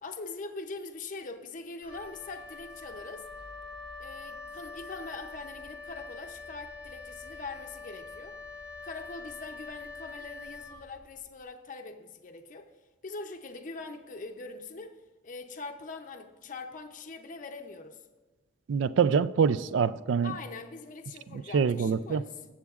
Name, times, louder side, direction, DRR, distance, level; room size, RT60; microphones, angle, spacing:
voice 1, 0.0-3.3 4.0-8.4 8.8-12.7 13.0-14.9 15.2-18.0 20.2-22.5, left 3 dB, 40° left, 4 dB, 0.5 m, -42 dB
Wind instrument woodwind instrument, 1.8-11.3, left 3 dB, 10° right, 0.9 m, -44 dB
voice 2, 18.7-20.3 21.5-22.2, right 6 dB, 70° right, 16 dB, 0.3 m, -25 dB
20.0 x 7.3 x 2.4 m, 1.2 s
head